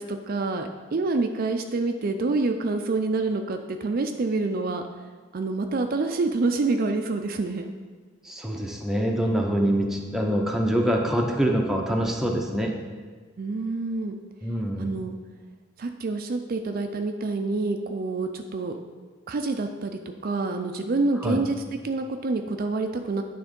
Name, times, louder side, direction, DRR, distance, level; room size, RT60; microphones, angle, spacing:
voice 1, 0.0-4.8 5.3-7.7 13.4-14.2 14.8-15.1 15.8-18.8 19.3-21.6 21.8-23.2, right 3 dB, 45° right, 5 dB, 0.4 m, -27 dB
voice 2, 8.2-12.8 14.4-15.0 21.2-21.4, equal, ahead, 0 dB, 0.6 m, -25 dB
9.3 x 3.5 x 5.2 m, 1.5 s
head